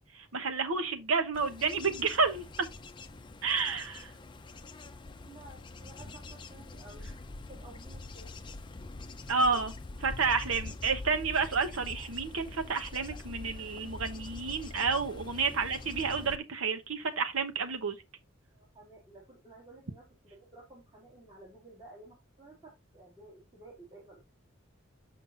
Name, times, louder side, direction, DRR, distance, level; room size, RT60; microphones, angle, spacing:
voice 1, 0.3-2.4 3.4-4.1 9.3-9.7 10.0-18.0, right 4 dB, 85° right, 1.0 m, -30 dB
Bird / Insect / Wind, 1.3-16.4, left 2 dB, 20° left, 0.6 m, -44 dB
voice 2, 5.2-7.1 7.5-8.3 9.5-9.6 18.5-20.0 20.3-24.2, right 2 dB, 20° right, 3.2 m, -53 dB
7.2 x 7.1 x 2.6 m
head